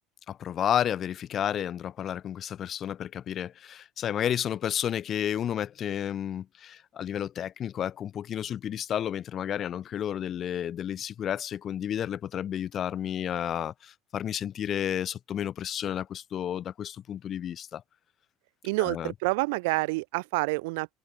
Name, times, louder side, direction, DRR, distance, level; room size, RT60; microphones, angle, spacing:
voice 1, 0.3-17.8 18.8-19.1, left 10 dB, 30° left, 2.7 m, -31 dB
voice 2, 18.6-20.9, right 26 dB, 80° right, 2.6 m, -28 dB
open air
cardioid pair, 170°, 0 cm